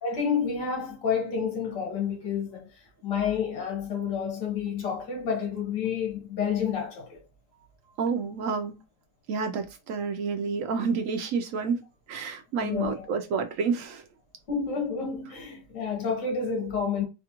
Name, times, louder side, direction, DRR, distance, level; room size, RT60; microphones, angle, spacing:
voice 1, 0.0-2.7 3.0-7.2 12.6-13.0 14.5-17.1, left 6 dB, 80° left, 1.9 m, -29 dB
voice 2, 8.0-8.8 9.3-11.8 12.1-14.0, right 5 dB, 75° right, 0.7 m, -29 dB
4.1 x 2.4 x 2.9 m
omnidirectional pair, 1.9 m